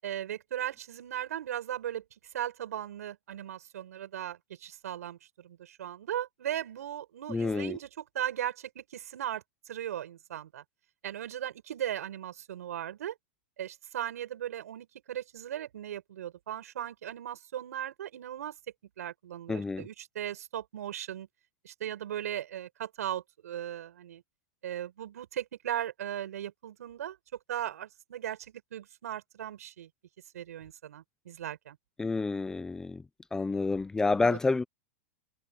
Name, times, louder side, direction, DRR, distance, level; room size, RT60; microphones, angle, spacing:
voice 1, 0.0-2.0 2.3-10.6 11.0-13.1 13.6-18.6 19.0-21.3 21.6-24.2 24.6-27.2 27.5-29.9 30.3-31.8 34.2-34.4, right 11 dB, 90° right, 7.9 m, -37 dB
voice 2, 7.3-7.8 19.5-19.9 32.0-33.0 33.3-34.6, left 3 dB, 5° left, 0.6 m, -29 dB
supercardioid pair, 155°, 8 cm